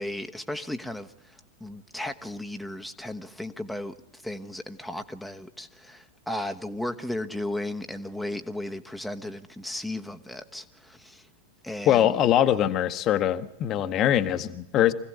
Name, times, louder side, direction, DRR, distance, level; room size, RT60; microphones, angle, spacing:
voice 1, 0.0-11.3 11.6-12.2, left 1 dB, ahead, 1.0 m, -35 dB
voice 2, 11.9-14.9, left 11 dB, 35° left, 1.1 m, -22 dB
25.0 x 16.5 x 8.1 m
figure-of-eight pair, 90°, 0 cm